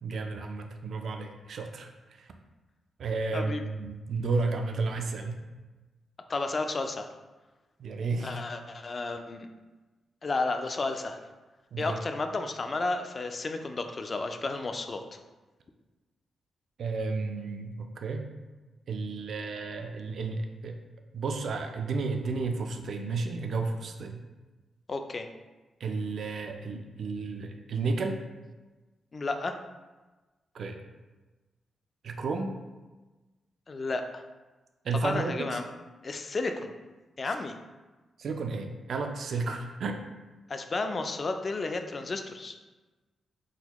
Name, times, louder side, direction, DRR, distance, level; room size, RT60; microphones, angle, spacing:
voice 1, 0.0-2.3 3.0-5.4 7.8-8.4 11.7-12.0 16.8-18.3 18.9-20.8 21.1-24.2 25.8-28.2 30.5-30.8 32.0-32.5 34.8-35.6 38.2-40.0, right 3 dB, 65° right, 4 dB, 0.3 m, -32 dB
voice 2, 6.3-7.1 8.2-9.5 10.2-11.2 11.8-15.0 24.9-25.3 29.1-29.6 33.7-34.2 35.0-35.6 36.0-36.7 37.2-37.6 40.5-42.6, left 3 dB, 40° left, 6 dB, 0.3 m, -32 dB
3.9 x 2.2 x 2.9 m, 1.2 s
cardioid pair, 85°, 0 cm